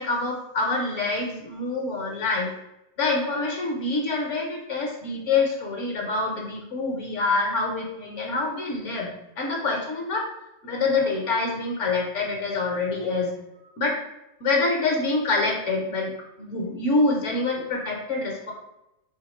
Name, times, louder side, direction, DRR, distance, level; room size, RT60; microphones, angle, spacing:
voice 1, 0.0-2.5 3.0-10.2 10.6-13.4 13.8-13.9 14.4-16.1 16.4-18.5, left 3 dB, 60° left, 0 dB, 1.0 m, -26 dB
3.0 x 2.8 x 4.1 m, 0.89 s
omnidirectional pair, 1.5 m